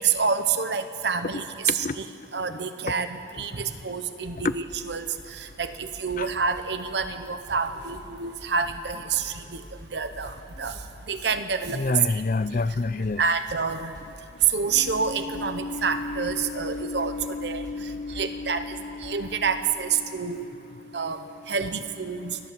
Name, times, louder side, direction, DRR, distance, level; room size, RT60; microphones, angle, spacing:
voice 1, 0.0-2.0 2.3-9.6 9.9-10.8 11.1-11.8 12.1-12.2 13.2-13.9 14.5-18.6 19.0-20.5 20.9-21.2 21.5-22.4, right 5 dB, 70° right, 9 dB, 0.9 m, -28 dB
sound 1, 4.3-19.5, equal, 25° right, 3.9 m, -48 dB
voice 2, 11.7-13.2 14.8-19.4, left 3 dB, 45° left, 14 dB, 0.5 m, -30 dB
29.5 x 12.5 x 7.5 m, 2.4 s
head